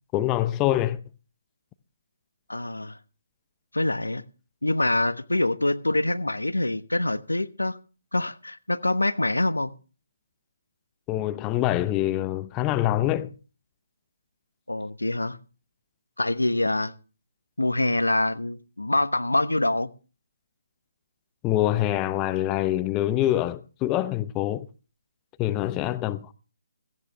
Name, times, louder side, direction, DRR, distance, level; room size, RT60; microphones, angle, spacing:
voice 1, 0.1-1.0 11.1-13.3 21.4-24.7 25.4-26.3, left 14 dB, 15° left, 0.7 m, -25 dB
voice 2, 2.5-3.0 3.7-4.2 4.6-7.8 8.1-9.7 14.7-15.4 16.2-16.9 17.6-19.9, left 2 dB, 80° left, 1.0 m, -25 dB
17.5 x 14.5 x 3.3 m
figure-of-eight pair, 140°, 0 cm